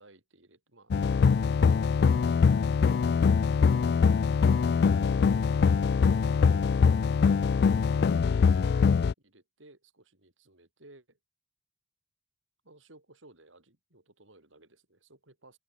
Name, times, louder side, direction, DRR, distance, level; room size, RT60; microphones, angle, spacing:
voice 1, 0.0-1.7 2.0-2.7 3.2-4.0 4.9-8.7 9.2-11.2 12.6-15.6, right 2 dB, 90° right, 6.1 m, -57 dB
sound 1, 0.9-9.1, left 5 dB, 55° left, 0.3 m, -23 dB
open air
head